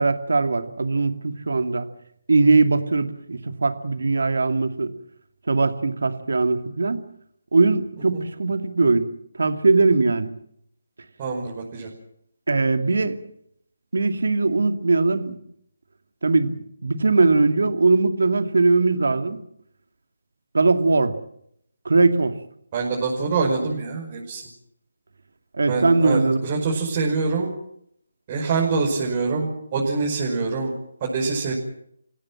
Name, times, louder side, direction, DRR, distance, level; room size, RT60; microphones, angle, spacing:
voice 1, 0.0-1.9 2.3-4.9 5.5-7.0 7.5-9.1 9.4-10.3 12.5-13.2 13.9-15.4 16.2-19.4 20.5-21.1 21.8-22.4 25.6-26.5, right 3 dB, 65° right, 8 dB, 2.5 m, -20 dB
voice 2, 11.2-11.9 22.7-24.4 25.7-27.5 28.3-30.7 31.0-31.5, right 4 dB, 30° right, -2 dB, 5.6 m, -25 dB
29.0 x 17.0 x 7.6 m, 0.71 s
figure-of-eight pair, 155°, 0 cm